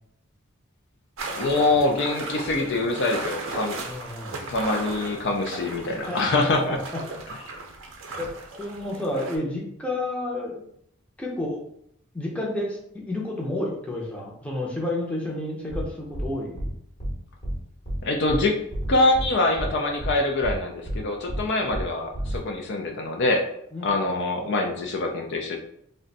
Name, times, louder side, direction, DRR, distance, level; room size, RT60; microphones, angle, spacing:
sound 1, 1.2-9.4, right 2 dB, 65° right, 0.5 m, -36 dB
voice 1, 1.3-3.8 4.5-6.8 7.5-7.6 18.0-18.6 18.9-23.4 23.8-25.6, left 2 dB, 55° left, 3 dB, 0.4 m, -24 dB
voice 2, 3.8-4.4 6.1-6.8 8.2-8.3 8.6-10.6 11.2-11.6 12.1-16.7 23.7-23.9, left 1 dB, 5° left, -3 dB, 0.6 m, -30 dB
sound 2, 15.7-15.8 16.1-16.3 16.6-16.7 17.0-17.1 17.4-17.6 17.9-18.0 18.3-18.4 18.7-19.3 19.6-19.7 20.0-20.1 20.4-20.6 20.9-21.0 21.3-21.4 21.7-21.8 22.1-22.4, equal, 40° left, 1.0 m, -29 dB
2.5 x 2.2 x 3.9 m, 0.73 s
head